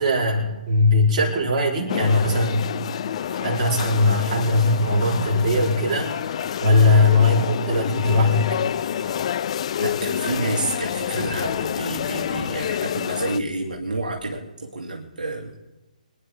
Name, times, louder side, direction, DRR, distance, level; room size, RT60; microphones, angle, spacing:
voice 1, 0.0-2.7 3.4-6.1 6.6-8.5, left 2 dB, 35° right, -3 dB, 4.9 m, -19 dB
sound 1, 1.9-13.4, left 9 dB, 45° left, 0.4 m, -28 dB
sound 2, 3.0-12.3, equal, 10° left, 6.0 m, -44 dB
sound 3, 5.1-6.6 7.3-14.4, left 2 dB, 60° left, 3.3 m, -40 dB
voice 2, 9.8-15.5, right 2 dB, 75° right, -1 dB, 2.7 m, -29 dB
25.5 x 10.5 x 3.8 m, 1.1 s
figure-of-eight pair, 145°, 5 cm